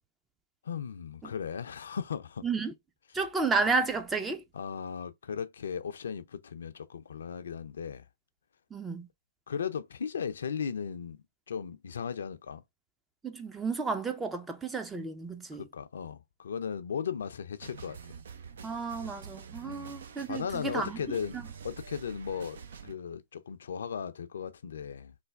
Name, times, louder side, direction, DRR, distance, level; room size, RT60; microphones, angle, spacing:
voice 1, 0.6-2.4 4.5-8.0 9.5-12.6 15.6-18.1 19.7-20.0 20.3-21.4 21.6-25.1, left 7 dB, 70° left, 0.4 m, -37 dB
voice 2, 2.4-2.7 3.1-4.4 8.7-9.1 13.2-15.7 18.6-21.0 21.3-21.4, right 4 dB, 10° right, 0.5 m, -32 dB
sound 1, 17.6-22.9, right 6 dB, 70° right, 0.5 m, -46 dB
3.3 x 2.2 x 3.2 m
hypercardioid pair, 125°, 0 cm